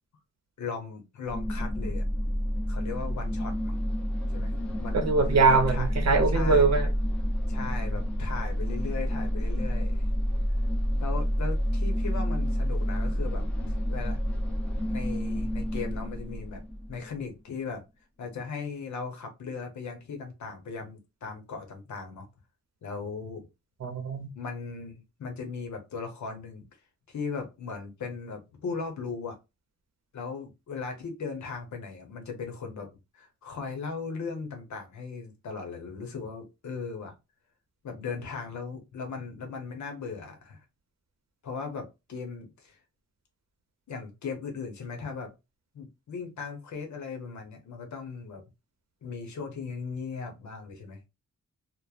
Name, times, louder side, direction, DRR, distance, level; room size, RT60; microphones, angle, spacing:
voice 1, 0.6-2.0 2.7-3.8 4.3-4.5 4.8-5.0 5.5-5.9 6.3-6.7 7.5-10.0 11.0-14.2 14.9-16.6 16.9-17.8 18.2-22.3 22.8-23.4 24.3-26.6 27.1-29.4 30.1-32.9 33.1-37.1 37.8-40.6 41.4-42.8 43.9-45.3 45.7-48.4 49.0-51.1, left 5 dB, 70° left, 0.8 m, -38 dB
sound 1, 1.3-17.2, equal, 5° left, 0.7 m, -29 dB
voice 2, 4.9-6.9 23.8-24.3, right 4 dB, 60° right, 0.7 m, -23 dB
3.0 x 2.1 x 2.3 m
wide cardioid pair, 170°, 30 cm